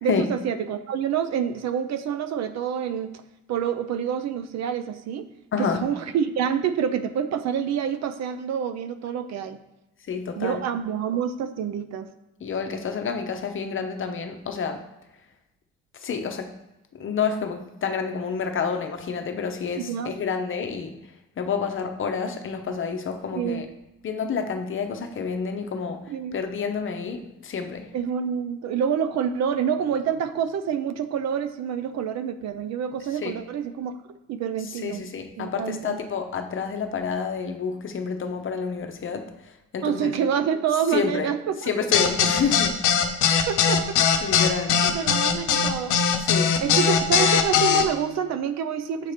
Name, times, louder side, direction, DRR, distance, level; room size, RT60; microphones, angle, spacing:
voice 1, 0.0-3.1 3.5-5.3 5.6-9.6 10.4-12.1 19.8-20.2 23.3-23.7 26.1-26.4 27.9-34.0 34.3-35.0 35.4-36.0 39.8-41.7 42.0-42.3 43.5-44.0 44.8-45.9 46.6-49.1, right 8 dB, 60° right, 9 dB, 0.6 m, -27 dB
voice 2, 5.5-5.8 10.1-10.6 12.4-14.8 16.0-16.5 17.0-20.9 21.4-23.7 24.0-26.0 26.3-27.9 33.2-33.3 34.8-39.3 39.7-40.1 40.9-41.3 41.7-42.7 44.2-44.8 46.3-46.5 46.9-47.0, left 6 dB, 40° left, 5 dB, 0.8 m, -29 dB
sound 1, 41.9-47.8, left 7 dB, 80° left, 0.7 m, -20 dB
7.5 x 2.9 x 4.9 m, 0.98 s
supercardioid pair, 85°, 31 cm